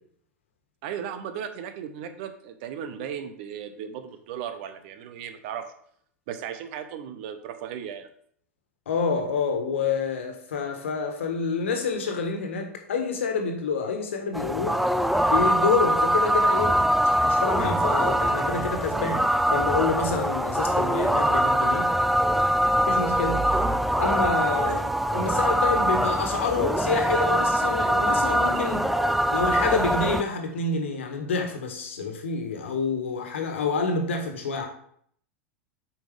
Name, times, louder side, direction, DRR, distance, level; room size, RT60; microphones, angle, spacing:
voice 1, 0.8-5.7 6.3-8.1 24.6-24.8, right 8 dB, 50° right, 9 dB, 0.9 m, -36 dB
voice 2, 8.9-14.8 15.2-16.7 17.2-21.9 22.9-23.4 24.0-28.9 29.3-34.7, left 4 dB, 65° left, 4 dB, 1.5 m, -28 dB
sound 1, 14.3-30.2, right 1 dB, ahead, 0.4 m, -23 dB
8.3 x 5.6 x 3.5 m, 0.64 s
figure-of-eight pair, 85°, 7 cm